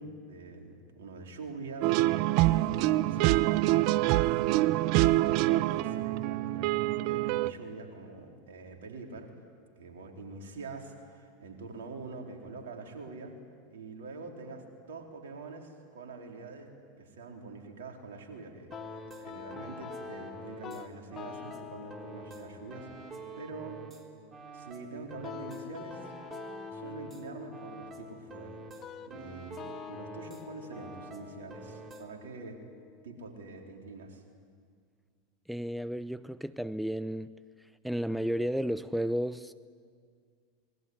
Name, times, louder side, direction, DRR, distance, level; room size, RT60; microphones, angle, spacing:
voice 1, 0.0-9.3 9.8-13.4 13.7-16.7 17.0-23.8 24.5-26.1 26.7-28.6 29.1-29.6 29.9-32.6 33.0-34.2, right 3 dB, 70° right, 4.3 m, -45 dB
sound 1, 1.8-7.5, right 17 dB, 50° right, 0.6 m, -25 dB
sound 2, 18.7-33.7, left 9 dB, 35° left, 1.2 m, -47 dB
sound 3, 18.7-20.8 21.1-24.0 24.3-27.2 27.5-30.4 30.7-32.1, right 4 dB, 30° right, 4.0 m, -47 dB
voice 2, 35.5-37.3 37.6-39.5, equal, ahead, 0.6 m, -33 dB
26.5 x 22.0 x 9.8 m
figure-of-eight pair, 85°, 0 cm